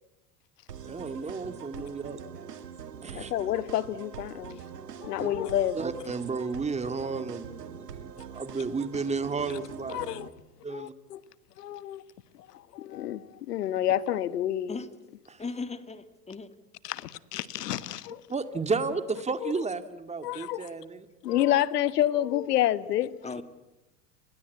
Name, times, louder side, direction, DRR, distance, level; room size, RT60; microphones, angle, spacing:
sound 1, 0.7-10.3, right 7 dB, 90° right, 2.2 m, -43 dB
voice 1, 0.8-2.3 3.0-3.3 5.2-5.3 5.7-10.0 10.6-10.9 15.3-15.4 18.3-21.0 21.3-21.4 23.3-23.4, right 4 dB, 15° right, 2.1 m, -33 dB
voice 2, 3.1-4.6 5.0-5.8 9.9-10.3 10.7-11.2 11.6-12.0 12.7-14.8 16.8-18.2 19.4-19.5 20.2-20.6 21.2-23.1, left 12 dB, 80° left, 1.4 m, -28 dB
voice 3, 15.4-16.5 23.2-23.4, left 4 dB, 15° left, 2.0 m, -37 dB
30.0 x 22.0 x 8.5 m
hypercardioid pair, 100°, 47 cm